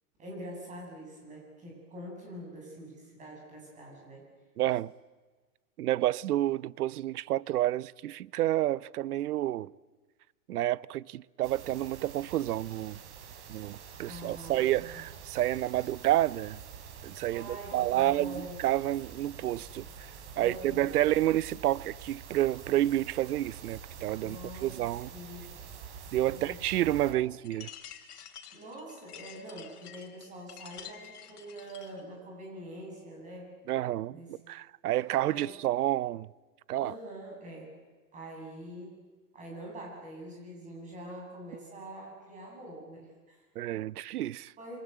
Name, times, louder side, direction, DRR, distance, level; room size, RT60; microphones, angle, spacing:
voice 1, 0.2-4.2 14.1-14.8 15.7-15.9 17.3-18.6 20.4-21.1 24.2-25.5 26.3-26.6 27.0-27.1 28.5-33.5 34.1-34.4 35.3-35.6 36.8-37.7 38.1-38.9 39.3-43.4 44.6-44.8, right 1 dB, 15° right, 7.4 m, -44 dB
voice 2, 4.6-4.9 5.8-9.7 10.5-13.0 13.5-16.6 17.0-20.1 20.4-25.1 26.1-27.7 33.7-36.3 36.7-36.9 43.6-44.5, right 14 dB, 80° right, 0.8 m, -29 dB
sound 1, 11.4-27.1, right 7 dB, 50° right, 3.8 m, -47 dB
sound 2, 27.4-32.0, left 9 dB, 80° left, 3.5 m, -49 dB
27.5 x 24.0 x 8.0 m
supercardioid pair, 170°, 45 cm